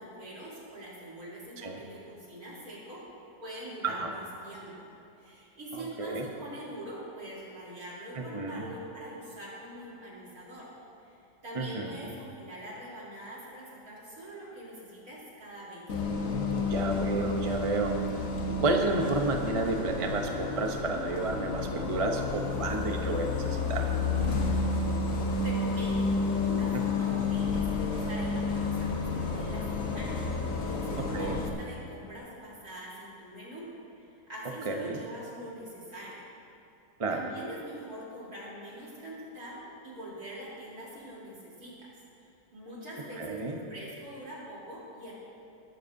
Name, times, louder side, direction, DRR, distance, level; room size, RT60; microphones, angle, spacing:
voice 1, 0.0-3.0 3.4-4.9 5.2-10.7 11.0-15.9 25.0-25.1 25.4-26.1 26.4-33.7 34.0-36.3 37.1-41.9 42.2-45.1, right 1 dB, 55° right, -7 dB, 3.9 m, -43 dB
voice 2, 3.8-4.1 5.7-6.2 8.1-8.6 11.5-12.1 16.1-18.0 18.5-23.9 26.7-26.8 31.1-31.4 34.6-35.0 37.0-37.2 43.2-43.6, right 3 dB, 35° right, 3 dB, 0.5 m, -31 dB
Bus, 15.9-31.5, left 3 dB, 50° left, 1.4 m, -30 dB
19.5 x 12.0 x 2.7 m, 2.7 s
omnidirectional pair, 1.9 m